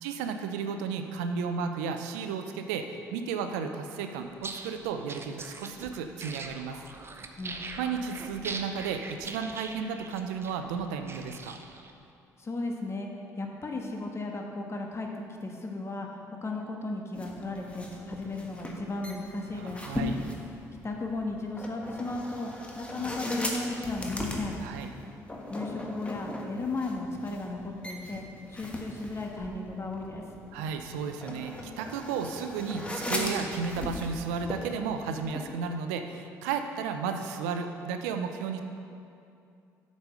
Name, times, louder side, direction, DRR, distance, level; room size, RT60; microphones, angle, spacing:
voice 1, 0.0-6.8 7.8-11.6 19.5-20.2 24.6-24.9 30.5-38.6, right 6 dB, 80° right, 6 dB, 0.5 m, -33 dB
sound 1, 4.3-11.9, right 3 dB, 30° right, 0.8 m, -42 dB
voice 2, 12.4-13.1 13.4-15.1 15.4-19.8 20.8-24.6 25.5-28.2 28.5-30.2, left 2 dB, 30° left, 1 dB, 1.4 m, -35 dB
sound 2, 17.1-35.4, left 1 dB, 15° left, 1.5 m, -38 dB
8.0 x 5.3 x 6.5 m, 2.5 s
hypercardioid pair, 50°, 9 cm